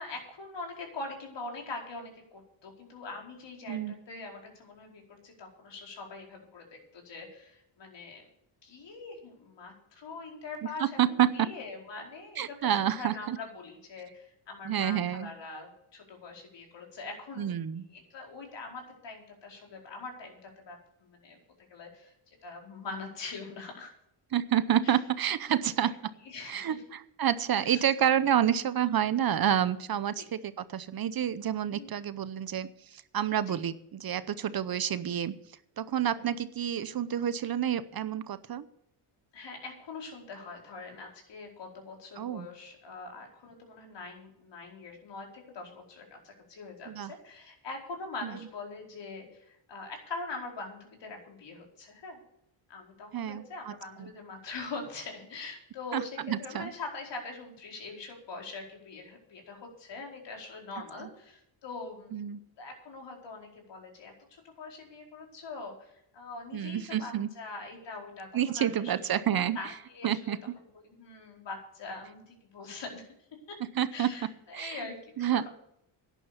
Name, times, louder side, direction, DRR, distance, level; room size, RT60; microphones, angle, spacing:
voice 1, 0.0-8.2 8.6-17.5 17.9-21.4 21.7-22.1 22.4-23.9 24.8-24.9 25.7-25.9 26.2-26.8 27.6-27.9 30.1-30.3 31.7-31.9 33.5-33.6 36.0-36.3 39.3-52.2 52.7-62.2 62.6-70.4 70.8-73.1 73.5-73.6 73.9-75.5, left 3 dB, 60° left, 1 dB, 4.8 m, -43 dB
voice 2, 10.8-11.5 12.4-13.4 14.6-15.3 17.4-17.9 24.3-26.1 26.5-35.3 35.8-38.6 42.2-42.5 46.9-47.1 48.2-48.3 53.1-53.7 54.0-54.1 55.9-56.7 61.0-61.1 62.1-62.4 66.5-67.3 68.3-69.6 70.0-70.6 73.8-74.1 74.5-74.8 75.2-75.5, right 10 dB, 50° right, 15 dB, 0.8 m, -29 dB
11.5 x 10.0 x 6.9 m, 0.75 s
cardioid pair, 100°, 48 cm